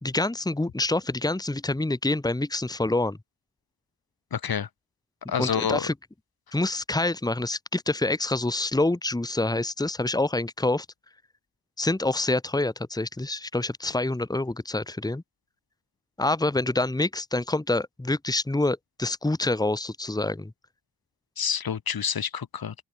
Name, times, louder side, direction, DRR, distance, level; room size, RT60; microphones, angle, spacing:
voice 1, 0.0-3.2 5.4-5.9 6.5-10.9 11.8-15.2 16.2-20.5, left 2 dB, 10° left, 1.6 m, -26 dB
voice 2, 4.3-4.7 5.3-5.9 21.4-22.7, left 7 dB, 85° left, 3.1 m, -28 dB
open air
wide cardioid pair, 135°, 36 cm